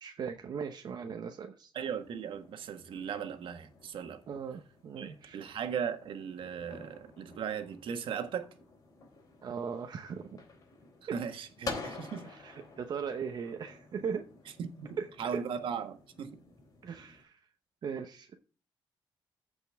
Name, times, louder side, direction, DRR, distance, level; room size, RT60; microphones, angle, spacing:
voice 1, 0.0-1.7 4.3-5.4 9.4-10.3 11.1-11.2 12.2-14.3 15.0-15.1 15.3-15.4 16.8-17.4 17.8-18.3, right 6 dB, 50° right, 0.8 m, -38 dB
voice 2, 1.7-4.2 5.0-8.5 11.1-12.3 14.6-16.3, right 7 dB, 70° right, 1.5 m, -37 dB
sound 1, 1.8-17.2, left 3 dB, 40° left, 3.8 m, -49 dB
15.0 x 5.3 x 3.5 m
wide cardioid pair, 170°, 9 cm